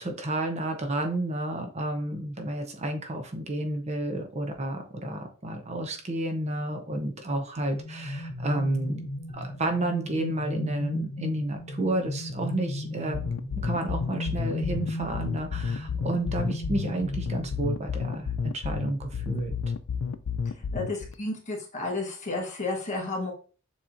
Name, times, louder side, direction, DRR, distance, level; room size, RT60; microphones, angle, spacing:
voice 1, 0.0-9.0 9.3-13.2 13.6-19.5, right 1 dB, 35° right, 4 dB, 0.7 m, -31 dB
sound 1, 7.6-18.0, equal, 55° left, 0.9 m, -36 dB
sound 2, 13.1-21.1, left 6 dB, 85° left, 0.4 m, -31 dB
voice 2, 20.5-23.3, left 2 dB, 40° left, 0 dB, 1.3 m, -32 dB
6.9 x 3.0 x 2.5 m, 0.38 s
head